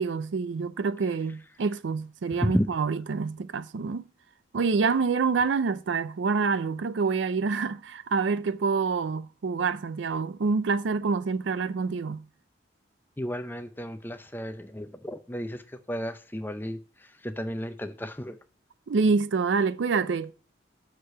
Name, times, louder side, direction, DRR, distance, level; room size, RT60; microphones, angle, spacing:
voice 1, 0.0-4.1 4.5-12.2 18.9-20.3, right 4 dB, 75° right, 0.4 m, -27 dB
voice 2, 13.2-15.6 15.9-16.8 17.2-18.3, equal, 10° left, 0.5 m, -33 dB
6.6 x 4.8 x 5.4 m
head